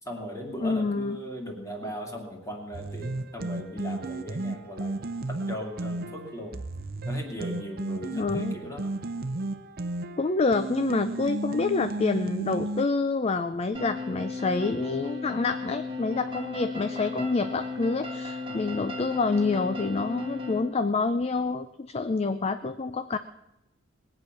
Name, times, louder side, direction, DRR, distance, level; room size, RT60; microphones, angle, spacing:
voice 1, 0.0-6.6 7.1-9.0 18.5-18.7, equal, 15° left, 1 dB, 2.5 m, -38 dB
voice 2, 0.6-1.2 8.1-8.5 10.2-23.2, left 3 dB, 30° left, 11 dB, 0.4 m, -27 dB
sound 1, 2.7-12.9, right 2 dB, 50° right, 0.7 m, -33 dB
sound 2, 13.7-20.6, left 3 dB, 25° right, 1.7 m, -35 dB
20.5 x 8.7 x 6.1 m, 0.90 s
head